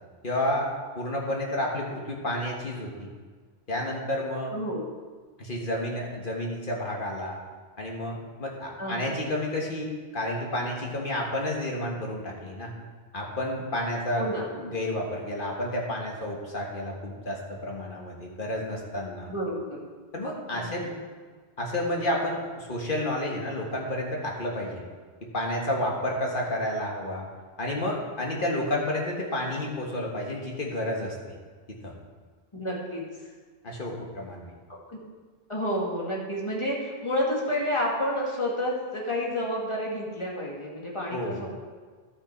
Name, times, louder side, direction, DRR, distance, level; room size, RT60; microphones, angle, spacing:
voice 1, 0.2-3.1 3.7-4.6 5.4-7.4 7.8-12.7 13.1-19.3 20.1-20.8 21.6-24.8 25.3-27.2 27.6-31.2 31.7-31.9 33.6-34.5 41.1-41.4, left 1 dB, 50° left, -1 dB, 1.7 m, -30 dB
voice 2, 4.5-4.8 8.8-9.2 14.2-14.5 19.3-19.8 20.5-21.0 32.5-33.0 34.9-35.0 35.5-41.5, equal, 25° left, -3 dB, 1.9 m, -30 dB
11.5 x 6.4 x 4.5 m, 1.5 s
omnidirectional pair, 1.1 m